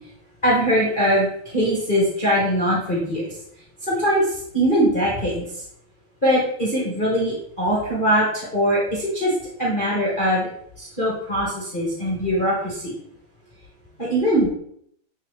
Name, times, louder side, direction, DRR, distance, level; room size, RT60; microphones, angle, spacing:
voice 1, 0.4-3.2 3.9-4.2 4.5-5.4 6.2-9.3 9.6-10.5 10.8-12.9 14.0-14.5, equal, 25° left, -6 dB, 1.1 m, -21 dB
8.2 x 3.8 x 3.3 m, 0.69 s
omnidirectional pair, 3.4 m